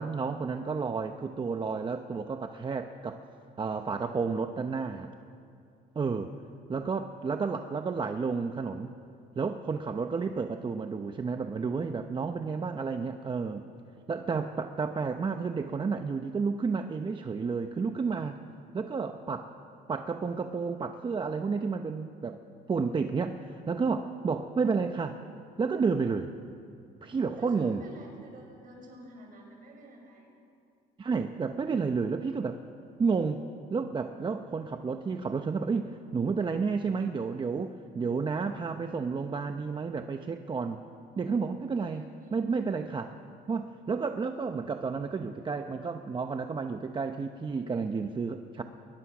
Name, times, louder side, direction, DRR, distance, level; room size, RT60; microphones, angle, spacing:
voice 1, 0.0-3.2 3.6-5.1 5.9-6.3 6.7-8.9 9.4-13.6 14.1-18.4 18.7-19.5 19.9-22.4 22.7-25.2 25.6-26.3 27.0-27.8 31.0-32.6 33.0-40.8 41.2-42.0 42.3-43.2 43.5-48.6, right 5 dB, 30° right, 7 dB, 0.9 m, -31 dB
voice 2, 27.4-30.3 41.7-42.3, right 1 dB, 55° right, 1 dB, 6.3 m, -49 dB
21.0 x 20.5 x 6.1 m, 2.5 s
cardioid pair, 110°, 17 cm